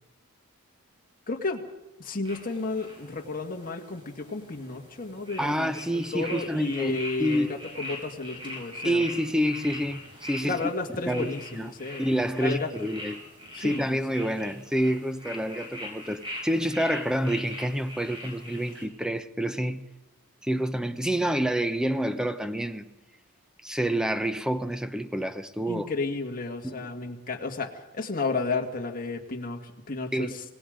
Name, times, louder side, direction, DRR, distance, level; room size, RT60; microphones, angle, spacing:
voice 1, 1.3-1.6 2.0-7.5 7.8-9.0 10.4-12.1 12.4-12.7 13.5-14.0 25.7-30.4, left 3 dB, 40° left, 2.1 m, -32 dB
sound 1, 2.2-18.8, left 1 dB, 25° right, 5.2 m, -42 dB
voice 2, 5.4-7.5 8.8-10.7 11.0-11.7 12.0-13.2 13.6-19.8 20.4-22.9 23.6-25.9 26.6-26.9 30.1-30.4, equal, 5° right, 0.8 m, -28 dB
26.5 x 19.0 x 5.2 m
head